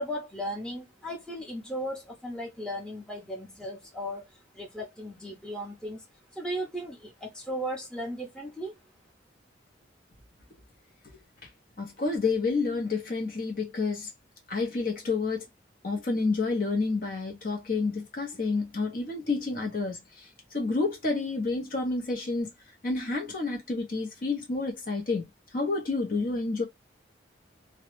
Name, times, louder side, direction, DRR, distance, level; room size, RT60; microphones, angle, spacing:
voice 1, 0.0-6.0 6.3-8.7, equal, 5° left, 0.7 m, -36 dB
voice 2, 11.8-14.1 14.5-15.4 15.8-20.0 20.5-22.5 22.8-25.3 25.5-26.6, left 3 dB, 50° left, 0.6 m, -29 dB
2.1 x 2.0 x 3.0 m
head